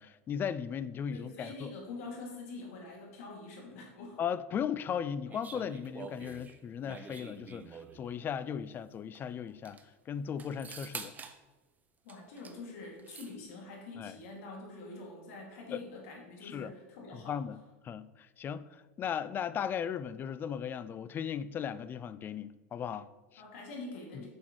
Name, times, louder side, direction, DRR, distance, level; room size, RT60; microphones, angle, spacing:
voice 1, 0.0-1.7 4.2-9.8 10.1-11.1 14.0-14.2 15.7-15.8 16.4-16.7 17.1-17.6 17.8-23.4 24.1-24.3, left 8 dB, 25° left, 0.3 m, -37 dB
voice 2, 1.1-4.2 12.0-17.4 23.4-24.3, left 3 dB, 70° left, 2.4 m, -45 dB
sound 1, 5.3-8.1 9.2-9.3 9.5-9.8 10.4-11.4 12.1-12.6 12.8-13.3, right 5 dB, 20° right, 0.6 m, -46 dB
7.1 x 6.3 x 3.1 m
hypercardioid pair, 110°, 8 cm